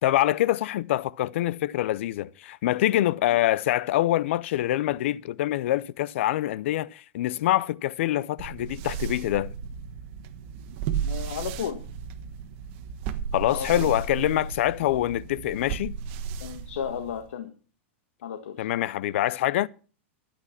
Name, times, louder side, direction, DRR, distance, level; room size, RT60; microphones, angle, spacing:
voice 1, 0.0-9.5 13.3-16.0 18.6-19.7, left 14 dB, 70° left, 0.6 m, -25 dB
sound 1, 8.4-17.3, right 7 dB, 50° right, 1.3 m, -34 dB
voice 2, 11.0-11.8 13.5-13.9 14.8-15.0 16.4-17.5 18.2-18.7, left 8 dB, 85° left, 1.6 m, -34 dB
13.0 x 8.9 x 5.8 m
supercardioid pair, 140°, 7 cm